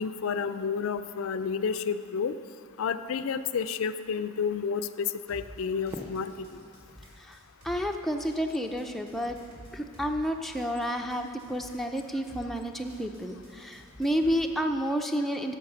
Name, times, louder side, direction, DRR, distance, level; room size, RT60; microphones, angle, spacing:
voice 1, 0.0-2.3 2.8-6.3, left 6 dB, 70° left, 11 dB, 0.4 m, -30 dB
sound 1, 5.3-14.5, equal, 85° right, 3.0 m, -50 dB
Fireworks, 5.9-8.9, equal, 15° right, 0.8 m, -47 dB
voice 2, 7.6-9.4 9.7-15.6, equal, ahead, 3 dB, 0.4 m, -30 dB
10.5 x 6.4 x 6.7 m, 2.2 s
head